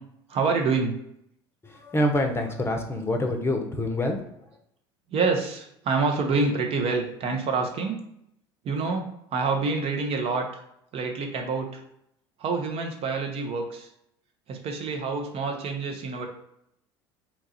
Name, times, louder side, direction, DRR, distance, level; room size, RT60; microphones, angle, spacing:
voice 1, 0.3-1.0 5.1-8.0 8.6-10.6 10.9-11.8 12.4-13.9 14.5-16.3, right 4 dB, 45° right, 3 dB, 0.7 m, -27 dB
voice 2, 1.6-4.2, left 1 dB, 15° left, 4 dB, 0.7 m, -26 dB
2.9 x 2.3 x 4.1 m, 0.76 s
hypercardioid pair, 70°, 14 cm